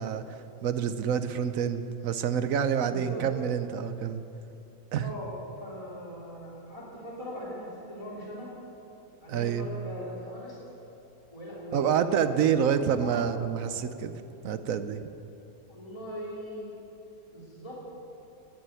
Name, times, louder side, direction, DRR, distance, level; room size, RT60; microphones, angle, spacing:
voice 1, 0.0-4.2 4.9-5.1 9.3-9.7 11.7-14.1 14.4-15.1, right 8 dB, 70° right, 10 dB, 1.1 m, -28 dB
voice 2, 2.8-3.2 5.0-8.5 9.2-10.6 11.3-13.2 15.7-16.7 17.3-17.8, equal, 20° left, -7 dB, 3.3 m, -40 dB
19.5 x 7.6 x 9.1 m, 2.9 s
omnidirectional pair, 1.6 m